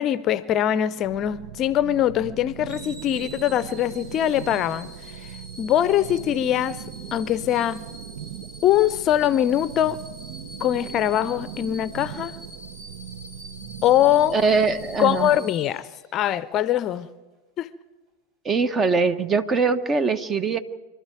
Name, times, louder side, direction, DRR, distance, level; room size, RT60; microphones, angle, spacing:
voice 1, 0.0-5.3 5.6-6.8 7.1-7.9 8.6-10.0 10.6-12.3 13.8-14.4 15.0-17.1 17.6-17.7, left 11 dB, 35° left, 0.6 m, -22 dB
sound 1, 1.0-15.4, right 9 dB, 60° right, 0.9 m, -39 dB
sound 2, 2.7-16.3 16.8-17.0, right 1 dB, 45° right, 5.6 m, -45 dB
voice 2, 14.3-15.3 18.4-20.6, right 4 dB, 25° right, 1.0 m, -22 dB
25.5 x 12.5 x 9.1 m
figure-of-eight pair, 90°, 0 cm